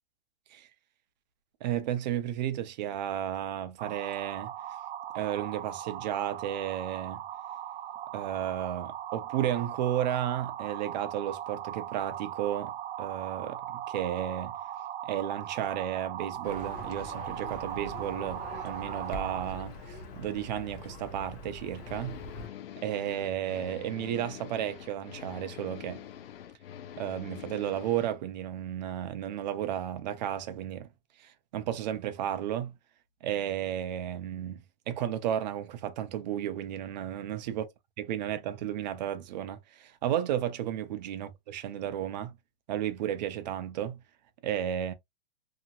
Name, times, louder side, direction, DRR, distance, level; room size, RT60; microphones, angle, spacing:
voice 1, 1.6-4.5 5.1-7.2 8.1-12.7 13.0-14.5 15.0-22.2 22.8-26.0 27.0-30.9 31.2-32.7 33.2-37.7 38.0-42.3 42.7-44.0 44.4-44.9, right 11 dB, 45° right, 0.6 m, -33 dB
sound 1, 3.8-19.5, right 11 dB, 90° right, 0.5 m, -39 dB
Livestock farm animals working animals, 16.4-22.5, left 2 dB, 40° left, 0.8 m, -43 dB
sound 2, 21.8-28.2, left 10 dB, 70° left, 0.6 m, -45 dB
2.9 x 2.7 x 2.3 m
hypercardioid pair, 155°, 30 cm